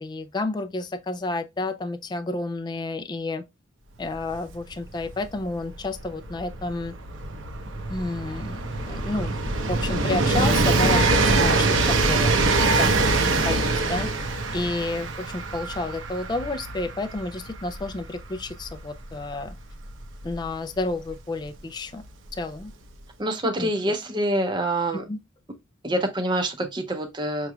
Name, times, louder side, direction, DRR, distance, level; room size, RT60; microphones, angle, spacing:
voice 1, 0.0-3.4 4.0-6.9 7.9-12.4 12.7-19.5 20.2-22.0 22.3-22.7 23.6-23.7 25.1-25.2, left 2 dB, 20° left, 0.3 m, -31 dB
Train, 4.1-4.2 4.4-21.0 22.0-22.1, right 3 dB, 70° right, 0.8 m, -24 dB
voice 2, 23.2-25.0 25.8-27.5, right 1 dB, 20° right, 0.6 m, -26 dB
5.9 x 3.0 x 2.3 m
head